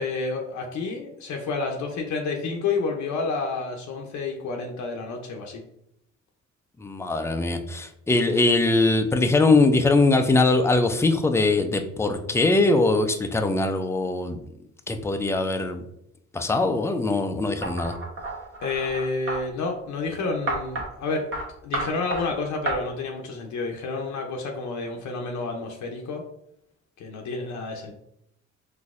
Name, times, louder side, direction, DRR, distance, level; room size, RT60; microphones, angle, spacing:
voice 1, 0.0-5.6 18.6-21.3 21.6-26.2 27.0-27.9, left 4 dB, 70° left, 1 dB, 0.6 m, -29 dB
voice 2, 6.8-14.4 14.9-15.8 16.3-17.9, left 2 dB, 10° left, 7 dB, 0.3 m, -21 dB
sound 1, 17.6-19.4 20.5-20.9 21.3-21.5 21.7-22.2 22.7-22.8, right 2 dB, 45° right, 1.0 m, -30 dB
4.0 x 2.6 x 2.4 m, 0.76 s
cardioid pair, 90°, 30 cm